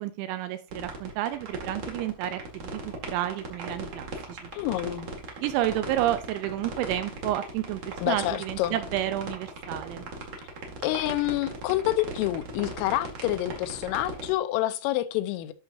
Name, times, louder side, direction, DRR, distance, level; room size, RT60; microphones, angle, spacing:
voice 1, 0.0-4.5 5.4-10.1, right 13 dB, 80° right, 2.8 m, -30 dB
sound 1, 0.7-14.3, right 4 dB, 50° right, 2.4 m, -37 dB
voice 2, 4.5-5.1 8.0-8.8 10.8-15.5, left 15 dB, 90° left, 3.3 m, -28 dB
11.5 x 6.1 x 2.6 m
omnidirectional pair, 5.7 m